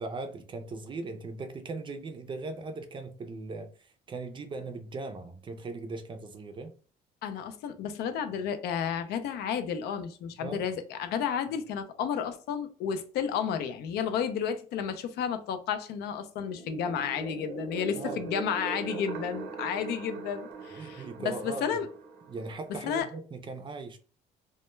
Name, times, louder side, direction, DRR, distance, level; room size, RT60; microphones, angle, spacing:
voice 1, 0.0-6.7 10.4-10.7 17.9-18.2 20.8-21.8 22.3-24.0, right 3 dB, 30° right, 0.4 m, -39 dB
voice 2, 7.2-21.9 22.8-23.1, left 7 dB, 75° left, 0.4 m, -32 dB
sound 1, 16.5-23.0, right 4 dB, 90° right, 0.7 m, -41 dB
2.2 x 2.1 x 3.0 m
cardioid pair, 110°, 17 cm